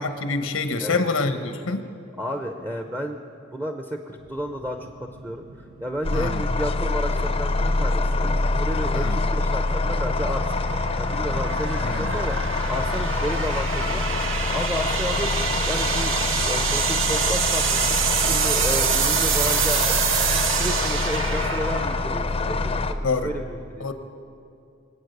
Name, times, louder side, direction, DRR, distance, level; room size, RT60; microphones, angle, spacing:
voice 1, 0.0-1.8 6.1-6.4 8.9-9.2 11.8-12.1 23.0-23.3 23.8-23.9, left 3 dB, 90° left, 8 dB, 1.1 m, -26 dB
voice 2, 2.2-3.2 3.5-10.5 11.0-12.4 12.7-14.0 14.5-16.1 16.4-20.0 20.5-23.9, equal, 15° right, 5 dB, 0.7 m, -32 dB
sound 1, 4.2-23.3, right 7 dB, 65° right, 0.8 m, -28 dB
sound 2, 6.0-22.9, left 3 dB, 30° left, 0.6 m, -25 dB
24.0 x 8.6 x 6.7 m, 2.5 s
head